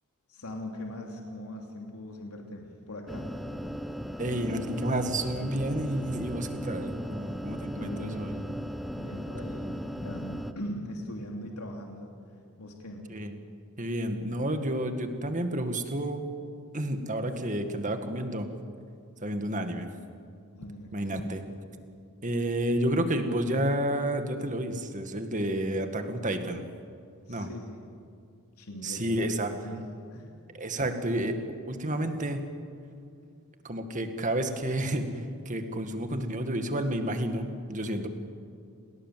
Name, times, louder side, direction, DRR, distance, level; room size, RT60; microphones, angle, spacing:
voice 1, 0.3-3.3 7.6-12.1 12.6-13.1 20.6-21.4 27.3-27.8 28.6-29.8 30.1-30.3, left 1 dB, 90° left, 1 dB, 3.0 m, -41 dB
sound 1, 3.1-10.5, equal, ahead, 1.0 m, -37 dB
voice 2, 4.2-8.3 13.1-13.3 13.8-16.3 16.7-18.5 19.2-19.9 20.9-21.4 22.2-26.6 27.3-27.5 28.8-29.5 30.5-31.4 31.7-32.5 33.6-38.1, right 1 dB, 35° right, 6 dB, 2.0 m, -30 dB
29.5 x 20.0 x 7.7 m, 2.4 s
head